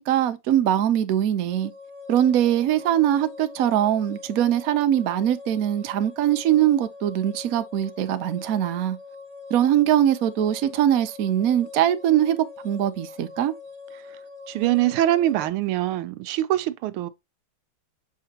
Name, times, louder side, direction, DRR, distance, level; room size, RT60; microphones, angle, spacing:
voice 1, 0.0-1.7 2.1-9.0 9.5-13.5, right 11 dB, 65° right, 0.9 m, -22 dB
sound 1, 1.5-15.5, left 4 dB, 40° right, 1.3 m, -43 dB
voice 2, 14.5-17.1, right 14 dB, 85° right, 1.5 m, -23 dB
7.4 x 4.8 x 2.8 m
omnidirectional pair, 2.3 m